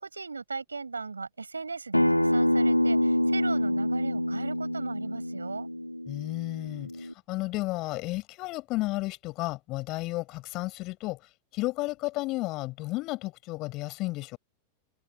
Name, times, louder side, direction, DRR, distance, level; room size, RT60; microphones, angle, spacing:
voice 1, 0.0-5.7, right 4 dB, 75° right, 5.8 m, -37 dB
Acoustic guitar, 1.9-7.1, left 1 dB, 90° left, 1.8 m, -26 dB
voice 2, 6.1-11.2 11.5-14.4, left 21 dB, 40° left, 6.9 m, -33 dB
figure-of-eight pair, 90°, 0 cm